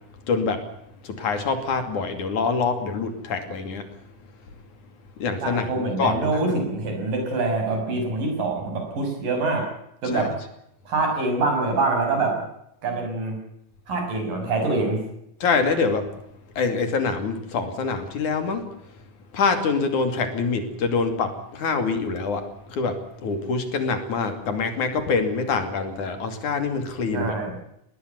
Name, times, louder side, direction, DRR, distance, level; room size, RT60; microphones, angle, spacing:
voice 1, 0.3-0.6 1.0-3.8 5.2-6.5 10.1-10.3 15.4-16.1 16.6-18.6 19.3-27.3, left 4 dB, 65° left, 8 dB, 4.0 m, -25 dB
voice 2, 5.4-9.7 10.0-10.3 10.9-12.4 12.8-13.4 13.9-15.0 27.1-27.5, right 3 dB, 75° right, 3 dB, 8.0 m, -25 dB
20.0 x 19.0 x 9.5 m, 0.79 s
omnidirectional pair, 3.9 m